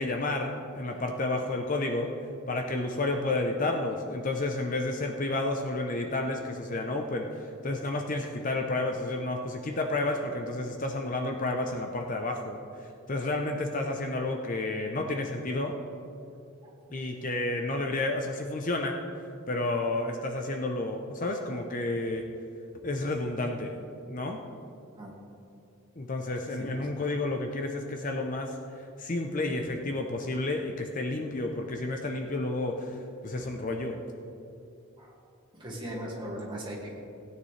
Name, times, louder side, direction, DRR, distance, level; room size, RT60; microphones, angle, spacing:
voice 1, 0.0-2.1 2.5-12.6 13.1-15.8 16.9-19.0 19.5-22.2 22.8-23.8 24.1-24.4 26.0-33.0 33.2-34.0, left 2 dB, 35° left, 3 dB, 0.7 m, -31 dB
voice 2, 35.5-37.0, right 1 dB, 20° right, -4 dB, 2.1 m, -38 dB
17.0 x 9.5 x 3.3 m, 2.6 s
head